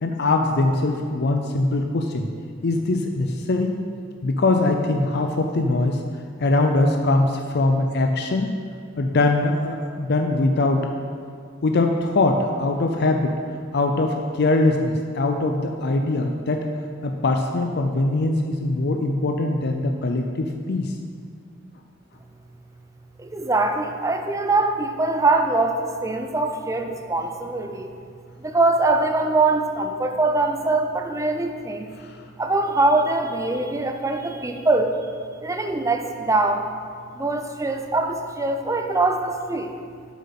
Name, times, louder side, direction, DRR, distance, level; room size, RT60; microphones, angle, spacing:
voice 1, 0.0-2.3 2.6-3.7 4.2-6.0 6.4-8.5 9.0-10.9 11.6-13.4 13.7-16.7 17.0-20.9 32.0-32.2, left 2 dB, 50° left, 4 dB, 0.5 m, -22 dB
voice 2, 23.2-27.9 28.4-31.9 32.4-35.0 35.4-36.7 37.1-39.7, right 2 dB, 15° right, 5 dB, 0.6 m, -23 dB
7.4 x 7.3 x 5.9 m, 2.2 s
head